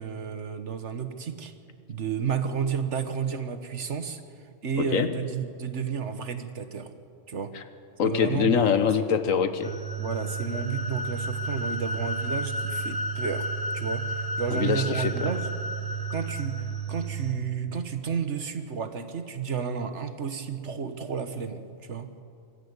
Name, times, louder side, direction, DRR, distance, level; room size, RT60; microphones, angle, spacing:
voice 1, 0.0-1.5 1.9-4.2 4.6-6.9 7.3-7.5 8.0-8.6 10.0-13.5 13.7-15.5 16.1-22.1, right 6 dB, 60° right, 9 dB, 1.5 m, -31 dB
voice 2, 8.0-9.7 14.5-15.1, left 7 dB, 85° left, 10 dB, 1.5 m, -24 dB
sound 1, 9.6-17.3, right 2 dB, 15° right, 1.3 m, -31 dB
24.5 x 14.0 x 8.1 m, 2.3 s
omnidirectional pair, 1.3 m